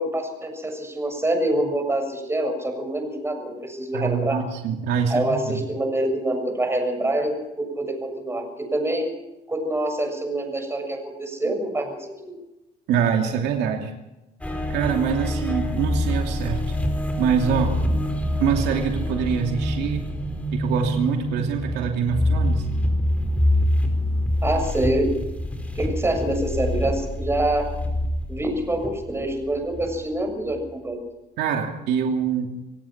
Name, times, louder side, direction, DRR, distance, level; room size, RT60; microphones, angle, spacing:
voice 1, 0.0-4.4 5.1-7.3 7.6-9.1 9.5-12.1 24.4-25.1 25.8-27.7 28.3-31.0, right 1 dB, 15° right, 4 dB, 7.0 m, -25 dB
voice 2, 3.9-5.6 11.4-11.5 12.9-13.9 14.7-16.6 17.2-17.8 18.4-20.1 20.5-22.6 31.4-32.5, right 7 dB, 85° right, 2 dB, 2.8 m, -24 dB
sound 1, 14.4-29.9 30.3-30.6, left 1 dB, 10° left, 4.8 m, -25 dB
26.5 x 17.0 x 6.0 m, 0.98 s
cardioid pair, 110°, 17 cm